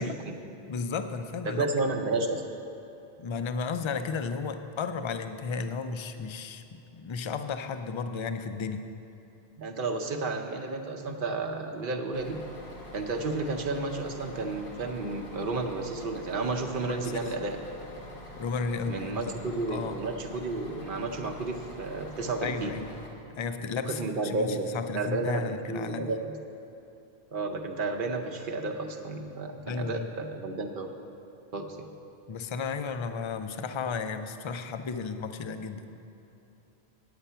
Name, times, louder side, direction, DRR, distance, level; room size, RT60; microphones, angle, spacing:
voice 1, 0.0-0.6 1.5-2.4 9.6-12.4 12.9-17.6 18.9-22.7 23.9-26.3 27.3-30.9 31.5-31.8, right 3 dB, 60° right, 3 dB, 0.9 m, -32 dB
voice 2, 0.7-1.7 3.2-8.9 16.9-17.3 18.4-19.2 19.7-20.0 22.4-23.0 23.3-26.1 29.7-30.1 32.3-35.9, left 5 dB, 50° left, 9 dB, 0.3 m, -34 dB
Bus, 12.1-23.1, left 1 dB, 85° left, 1.6 m, -45 dB
8.9 x 8.7 x 5.6 m, 3.0 s
omnidirectional pair, 1.1 m